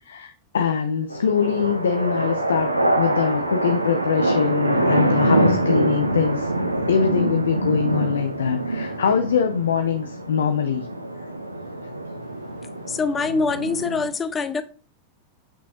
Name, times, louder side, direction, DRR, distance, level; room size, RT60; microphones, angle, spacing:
voice 1, 0.1-6.5 6.9-10.9, left 7 dB, 65° left, 0.7 m, -23 dB
sound 1, 1.1-14.1, right 1 dB, 85° right, 0.9 m, -24 dB
voice 2, 12.9-14.6, left 4 dB, 20° left, 0.7 m, -24 dB
8.1 x 6.1 x 2.9 m
figure-of-eight pair, 90°, 0 cm